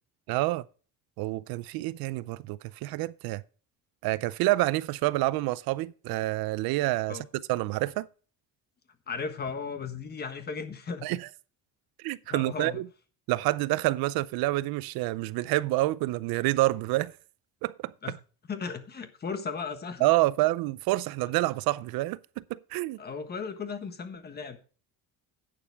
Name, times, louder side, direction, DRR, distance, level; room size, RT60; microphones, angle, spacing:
voice 1, 0.3-0.6 1.2-3.4 4.0-8.1 11.0-11.2 12.0-12.8 13.3-17.1 17.6-17.9 20.0-23.0, right 18 dB, 75° right, 0.6 m, -28 dB
voice 2, 9.1-11.2 12.3-12.8 18.0-18.2 18.4-20.1 23.0-24.6, left 5 dB, 25° left, 1.4 m, -36 dB
11.5 x 9.1 x 3.4 m
cardioid pair, 155°, 36 cm